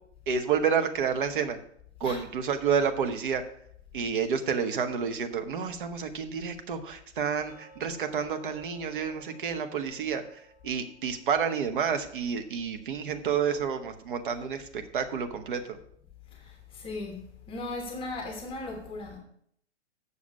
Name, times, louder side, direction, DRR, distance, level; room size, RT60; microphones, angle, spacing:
voice 1, 0.3-1.6 2.0-3.4 3.9-15.8, right 6 dB, 45° right, 1.0 m, -29 dB
sound 1, 7.5-14.3 14.6-14.7 15.2-15.3 15.8-15.9, right 1 dB, 15° right, 3.4 m, -57 dB
voice 2, 16.3-19.2, left 2 dB, 15° left, 1.1 m, -37 dB
7.2 x 6.7 x 5.5 m
figure-of-eight pair, 115°, 35 cm